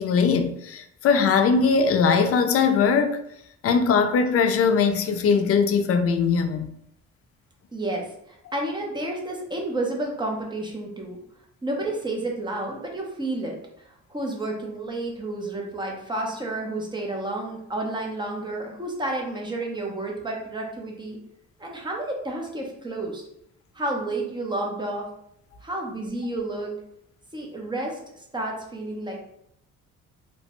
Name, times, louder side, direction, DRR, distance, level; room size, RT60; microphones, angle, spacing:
voice 1, 0.0-3.2 3.6-6.7, left 5 dB, 50° left, 0.4 m, -20 dB
voice 2, 7.7-11.2 11.6-21.2 21.6-23.2 23.7-25.1 25.6-26.7 27.3-29.3, right 2 dB, 15° right, 0.7 m, -31 dB
2.9 x 2.1 x 2.9 m
cardioid pair, 90°, 30 cm